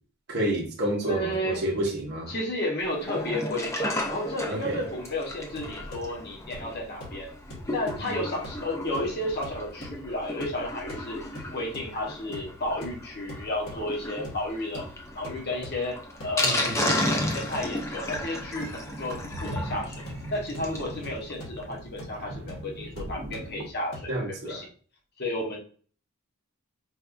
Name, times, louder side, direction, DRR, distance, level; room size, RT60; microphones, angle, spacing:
voice 1, 0.3-2.3 4.5-4.8 8.1-8.2 16.4-17.0 24.1-24.6, right 1 dB, 45° right, 0.6 m, -29 dB
voice 2, 1.0-1.6 2.3-7.3 7.7-11.2 11.5-14.8 15.1-16.0 16.2-16.8 17.1-20.0 20.3-24.1 24.4-24.7 25.2-25.6, left 1 dB, 45° left, 0.8 m, -32 dB
Sink (filling or washing), 2.9-20.9 21.3-21.4 21.6-21.7 22.0-22.1, left 1 dB, 10° left, 0.3 m, -34 dB
sound 1, 5.5-24.2, left 1 dB, 75° left, 1.1 m, -45 dB
sound 2, 18.4-23.7, right 1 dB, 90° right, 0.6 m, -40 dB
4.3 x 2.3 x 2.4 m
head